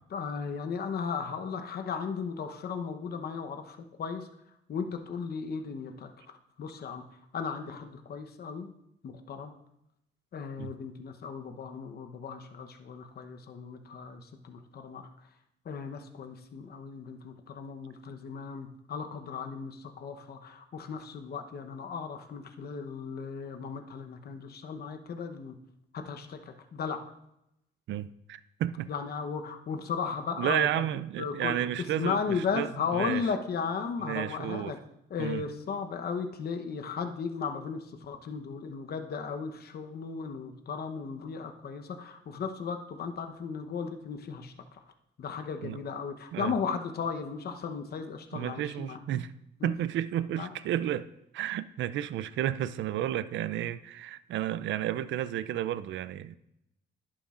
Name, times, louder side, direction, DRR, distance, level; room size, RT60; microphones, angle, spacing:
voice 1, 0.1-4.3 4.7-7.0 7.3-8.7 9.0-9.5 10.3-15.1 15.6-25.5 25.9-27.0 28.9-30.9 31.2-31.6 32.0-34.8 35.1-44.8 45.2-49.0 49.6-49.7 50.4-50.5, left 5 dB, 55° left, 6 dB, 0.9 m, -36 dB
voice 2, 27.9-28.9 30.4-33.2 34.0-34.7 35.2-35.4 45.6-45.8 46.3-46.5 48.3-49.3 49.6-56.4, right 12 dB, 70° right, 16 dB, 0.5 m, -32 dB
11.0 x 9.0 x 2.5 m, 0.81 s
cardioid pair, 90°, 20 cm